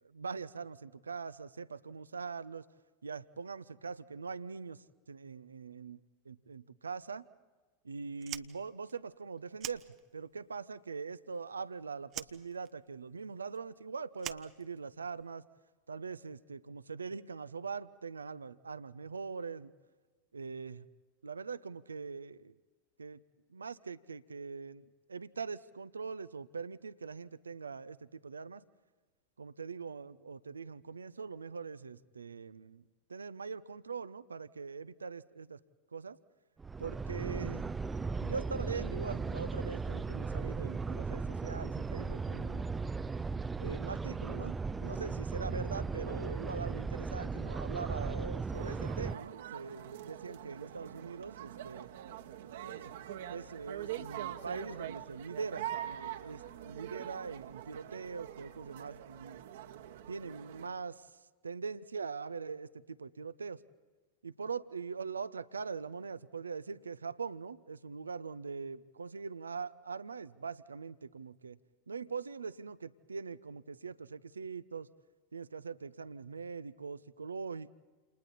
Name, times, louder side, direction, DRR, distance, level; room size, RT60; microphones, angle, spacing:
voice 1, 0.0-2.6 3.0-4.8 5.1-6.0 6.3-7.2 7.8-9.8 10.1-15.4 15.9-19.7 20.3-20.8 21.2-22.5 23.0-23.2 23.5-24.8 25.1-28.6 29.4-32.8 33.1-35.6 35.9-36.2 36.8-37.7 38.2-42.6 43.6-51.9 52.6-52.9 53.3-59.4 60.1-61.0 61.4-63.6 64.2-71.6 71.9-74.9 75.3-77.7, right 5 dB, 80° right, 15 dB, 0.7 m, -42 dB
Fire, 8.1-10.5 10.7-11.7 12.1-15.2, right 13 dB, 40° right, 0.9 m, -46 dB
sound 1, 36.6-49.1, right 4 dB, 15° right, 0.6 m, -37 dB
sound 2, 48.5-60.7, right 11 dB, 60° right, 1.4 m, -44 dB
29.5 x 28.5 x 4.2 m, 1.3 s
figure-of-eight pair, 90°, 0 cm